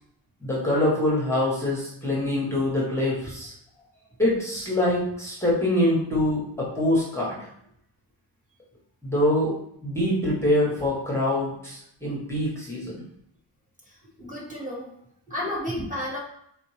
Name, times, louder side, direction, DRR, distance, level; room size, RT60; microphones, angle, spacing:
voice 1, 0.4-3.5 4.2-7.5 9.0-9.6 9.8-13.0, left 1 dB, 5° left, -5 dB, 0.9 m, -24 dB
voice 2, 13.9-14.9 15.3-16.2, left 1 dB, 20° right, -4 dB, 1.1 m, -32 dB
4.3 x 3.7 x 3.1 m, 0.71 s
wide cardioid pair, 170°, 43 cm